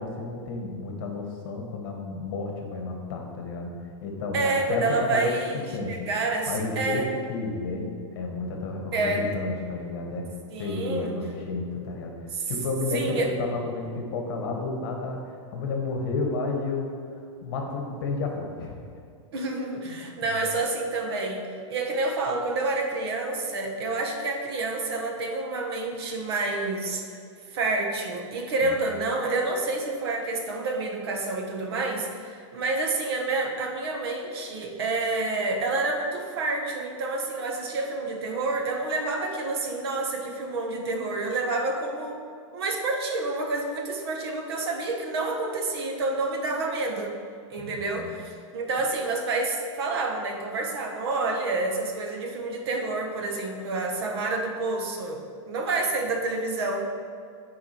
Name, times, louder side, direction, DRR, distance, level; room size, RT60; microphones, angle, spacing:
voice 1, 0.0-3.7 4.0-5.3 5.7-6.1 6.5-10.3 10.6-12.1 12.5-15.2 15.5-18.8 19.8-20.0 20.2-20.4 28.6-28.8 47.6-48.1, left 3 dB, 45° left, 2 dB, 1.3 m, -31 dB
voice 2, 4.3-5.6 5.9-7.1 8.9-9.3 10.5-11.2 12.3-12.5 12.9-13.3 19.3-27.2 27.5-42.2 42.5-47.2 47.5-56.8, right 3 dB, 55° right, 2 dB, 1.1 m, -28 dB
9.5 x 4.6 x 4.4 m, 2.3 s
supercardioid pair, 165°, 16 cm